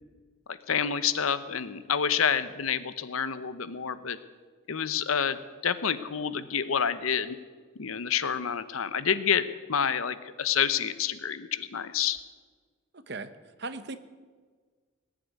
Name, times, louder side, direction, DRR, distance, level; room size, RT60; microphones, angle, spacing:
voice 1, 0.5-4.2 4.7-7.4 7.8-12.2, left 7 dB, 80° left, 14 dB, 0.8 m, -28 dB
voice 2, 12.9-13.3 13.6-14.0, right 3 dB, 50° right, 11 dB, 1.0 m, -37 dB
19.5 x 7.6 x 9.5 m, 1.5 s
head